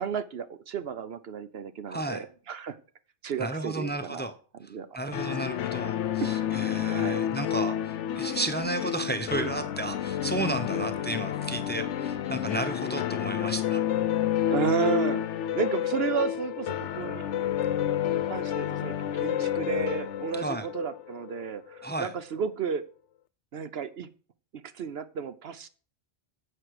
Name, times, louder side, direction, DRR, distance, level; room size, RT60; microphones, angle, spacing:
voice 1, 0.0-2.8 3.2-4.2 4.7-5.1 6.2-7.2 9.3-9.5 13.4-13.5 14.5-17.3 18.3-22.8 23.5-24.1 24.5-25.7, right 6 dB, 65° right, 12 dB, 0.9 m, -33 dB
voice 2, 1.9-2.2 3.4-4.3 4.9-5.9 6.2-13.8 20.4-20.7 21.8-22.1, right 2 dB, 10° left, 8 dB, 0.7 m, -33 dB
sound 1, 5.1-21.8, left 10 dB, 85° left, 1.0 m, -30 dB
11.0 x 7.9 x 4.8 m, 0.40 s
omnidirectional pair, 1.2 m